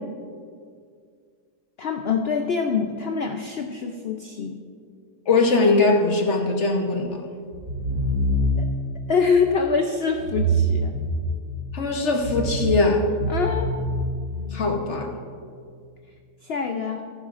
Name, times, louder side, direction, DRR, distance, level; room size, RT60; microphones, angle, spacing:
voice 1, 1.8-4.6 8.6-8.7 9.1-10.9 13.3-13.7 16.4-17.1, left 5 dB, 90° left, 5 dB, 0.5 m, -25 dB
voice 2, 5.3-7.1 11.7-13.0 14.5-15.1, left 3 dB, 50° left, 2 dB, 1.1 m, -21 dB
sound 1, 7.5-8.8 10.2-11.6 12.1-14.6, right 1 dB, 65° right, 2.0 m, -25 dB
14.5 x 10.5 x 2.5 m, 2.1 s
omnidirectional pair, 1.7 m